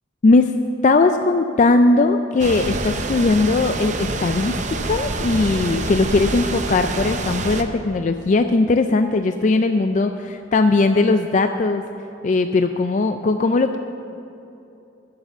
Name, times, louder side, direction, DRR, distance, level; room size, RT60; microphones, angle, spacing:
voice 1, 0.2-11.8 12.2-13.8, left 3 dB, 40° left, 7 dB, 0.4 m, -19 dB
sound 1, 2.4-7.6, right 3 dB, 40° right, 0.7 m, -26 dB
15.0 x 6.8 x 6.8 m, 2.8 s
head